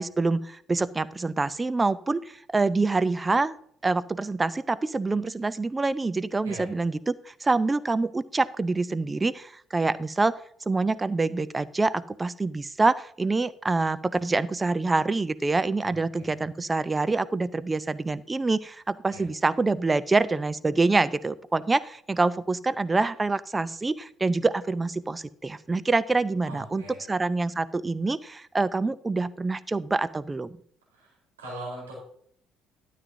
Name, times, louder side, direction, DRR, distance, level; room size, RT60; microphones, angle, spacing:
voice 1, 0.0-3.6 3.8-10.4 10.7-30.6, right 3 dB, 20° right, 17 dB, 0.6 m, -26 dB
voice 2, 6.4-6.8 15.8-16.4 19.1-19.2 26.4-27.0 30.9-31.9, right 1 dB, 80° right, -4 dB, 4.2 m, -41 dB
12.5 x 9.2 x 2.8 m, 0.63 s
figure-of-eight pair, 50°, 0 cm